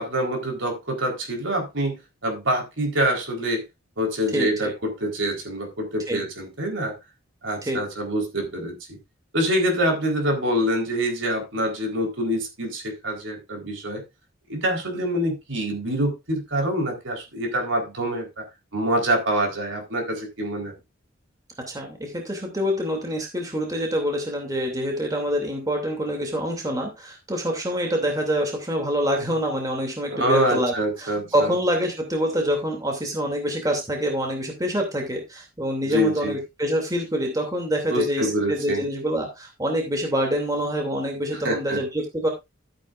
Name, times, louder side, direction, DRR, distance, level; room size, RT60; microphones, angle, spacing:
voice 1, 0.0-3.6 4.0-7.0 7.4-9.0 9.3-14.0 14.5-18.5 18.7-20.7 30.1-31.6 35.9-36.4 37.9-38.8 41.4-41.8, equal, 70° right, 4.1 m, -25 dB
voice 2, 4.3-4.7 6.1-6.2 7.6-7.8 21.6-42.3, equal, 20° right, 2.7 m, -26 dB
13.5 x 8.9 x 2.5 m
head